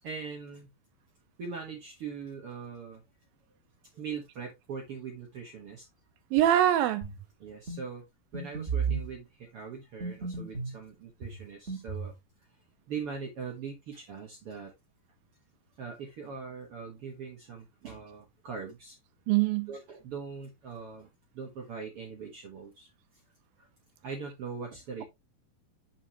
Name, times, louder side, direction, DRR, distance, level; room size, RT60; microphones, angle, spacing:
voice 1, 0.0-0.7 1.4-3.0 3.9-5.8 7.4-8.0 8.3-12.1 12.9-14.7 15.8-19.0 19.7-22.9 23.6-23.7 24.0-25.0, right 5 dB, 60° right, 1.4 m, -41 dB
voice 2, 6.3-7.1 19.3-19.7, right 12 dB, 80° right, 2.3 m, -23 dB
sound 1, 7.0-7.3 7.7-7.8 8.3-9.1 10.0-10.8 11.2-12.2, right 5 dB, 35° right, 1.1 m, -34 dB
7.5 x 6.0 x 2.9 m
omnidirectional pair, 4.6 m